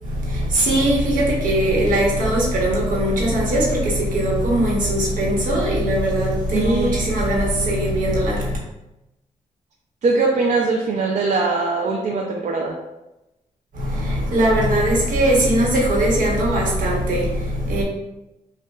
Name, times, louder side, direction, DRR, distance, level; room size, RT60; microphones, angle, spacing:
voice 1, 0.0-8.6 13.7-17.8, right 1 dB, 75° right, -3 dB, 1.2 m, -20 dB
voice 2, 6.5-7.0 10.0-12.8, right 3 dB, 55° right, -1 dB, 0.5 m, -21 dB
5.3 x 2.4 x 2.3 m, 0.97 s
cardioid pair, 85°, 14 cm